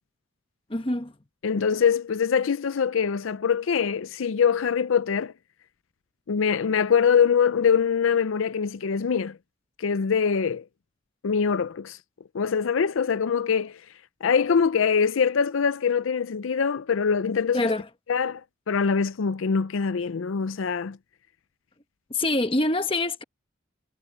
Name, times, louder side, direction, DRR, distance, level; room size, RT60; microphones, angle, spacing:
voice 1, 0.7-1.1 17.5-17.9 22.1-23.2, left 2 dB, 25° left, 1.2 m, -25 dB
voice 2, 1.4-5.3 6.3-9.4 9.8-10.6 11.2-12.0 12.3-13.8 14.2-17.6 18.1-18.4 18.7-21.0, left 6 dB, 80° left, 0.5 m, -23 dB
head